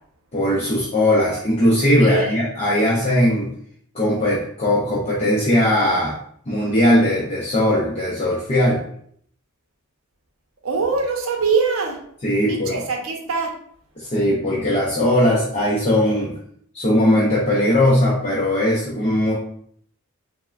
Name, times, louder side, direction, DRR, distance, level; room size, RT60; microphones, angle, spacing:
voice 1, 0.3-3.5 3.9-6.2 6.5-8.8 12.2-12.8 14.0-16.4 16.7-19.3, left 1 dB, 30° left, -6 dB, 0.6 m, -19 dB
voice 2, 2.0-2.3 10.6-12.0 12.4-13.5, right 5 dB, 70° right, 1 dB, 0.6 m, -23 dB
3.5 x 2.1 x 2.3 m, 0.65 s
head